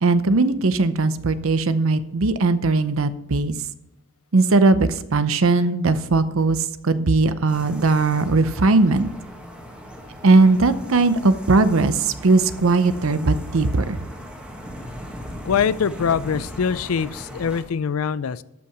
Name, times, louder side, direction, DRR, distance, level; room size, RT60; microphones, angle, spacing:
voice 1, 0.0-3.6 4.3-9.1 10.2-14.0, right 3 dB, 75° right, 13 dB, 0.7 m, -19 dB
sound 1, 7.5-17.6, equal, 5° right, 1.8 m, -38 dB
voice 2, 15.4-18.4, left 7 dB, 85° left, 17 dB, 0.4 m, -23 dB
12.5 x 5.7 x 6.0 m, 0.96 s
head